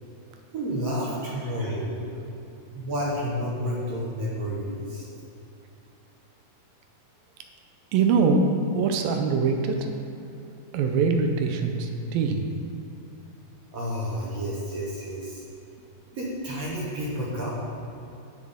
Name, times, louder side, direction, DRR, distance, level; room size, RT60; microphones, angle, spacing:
voice 1, 0.5-2.0 2.7-5.1 13.7-15.4 16.1-17.6, equal, 55° right, -5 dB, 2.1 m, -30 dB
voice 2, 7.9-9.9 10.7-12.5 17.3-17.4, right 4 dB, 80° right, 4 dB, 2.4 m, -23 dB
18.0 x 6.2 x 3.7 m, 2.9 s
omnidirectional pair, 4.3 m